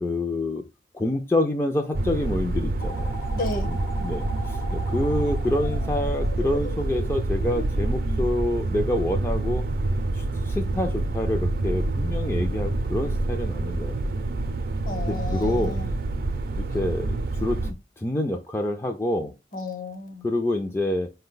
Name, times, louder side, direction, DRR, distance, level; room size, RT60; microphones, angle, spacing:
voice 1, 0.0-0.6 0.9-3.2 3.7-9.6 10.1-14.0 15.1-15.8 16.5-17.1 17.4-19.3 20.2-21.1, left 1 dB, 15° left, 0.4 m, -27 dB
sound 1, 1.9-17.7, right 2 dB, 55° right, 0.5 m, -27 dB
sound 2, 2.8-8.3, equal, 75° left, 1.0 m, -39 dB
voice 2, 3.3-3.7 14.8-16.0 19.5-20.3, left 2 dB, 55° left, 1.1 m, -32 dB
5.0 x 2.2 x 3.8 m
head